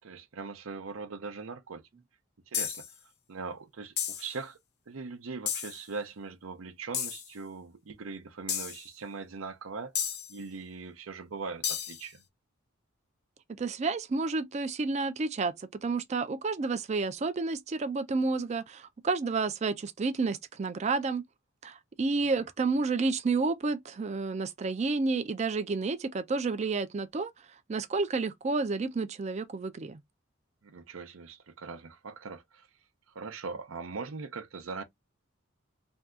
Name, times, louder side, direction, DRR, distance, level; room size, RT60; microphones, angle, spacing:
voice 1, 0.0-1.8 2.5-2.8 3.3-4.6 4.9-10.0 10.3-12.2 22.2-22.3 30.6-32.7 33.1-34.8, right 4 dB, 85° right, 0.6 m, -41 dB
sound 1, 2.5-2.9 4.0-4.3 5.5-5.8 6.9-7.3 8.5-8.8 9.9-10.3 11.6-12.0, left 8 dB, 55° left, 0.7 m, -32 dB
voice 2, 13.6-21.2 21.6-27.3 27.7-30.0, right 3 dB, 35° right, 0.4 m, -30 dB
2.6 x 2.3 x 3.5 m
head